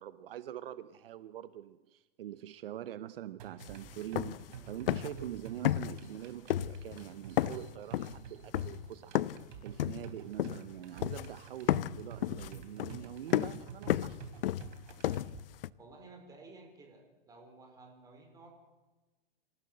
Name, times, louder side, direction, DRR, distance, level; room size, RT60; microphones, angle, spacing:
voice 1, 0.0-9.2 9.6-14.2, right 12 dB, 65° right, 14 dB, 0.9 m, -44 dB
sound 1, 3.4-15.4, right 8 dB, 50° right, 3.4 m, -50 dB
sound 2, 3.6-3.7 4.0-4.6 4.9-5.3 5.6-6.2 6.5-7.1 7.4-9.5 9.8-10.7 11.0-11.4 11.7-15.7, left 12 dB, 65° left, 0.7 m, -33 dB
sound 3, 3.8-11.9, left 3 dB, 10° left, 2.8 m, -65 dB
voice 2, 15.8-18.5, right 3 dB, 10° right, 2 dB, 4.5 m, -54 dB
27.0 x 16.0 x 7.8 m, 1.2 s
supercardioid pair, 165°, 30 cm